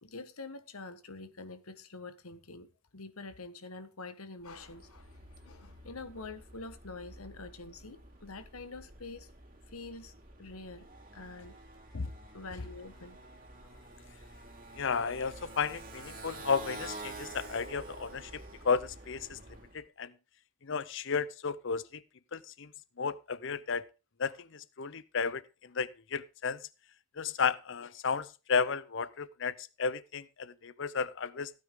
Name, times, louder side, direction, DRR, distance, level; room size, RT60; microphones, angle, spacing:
voice 1, 0.0-9.3 9.7-10.9 11.1-11.6 12.3-13.2, left 3 dB, 85° left, 1.5 m, -46 dB
Motorcycle, 4.4-19.8, right 2 dB, 40° right, 3.4 m, -49 dB
voice 2, 14.8-19.4 19.7-20.1 20.6-22.0 22.3-22.7 23.0-23.9 24.2-26.6 27.2-31.5, left 5 dB, 60° left, 0.7 m, -33 dB
15.5 x 9.2 x 3.8 m
head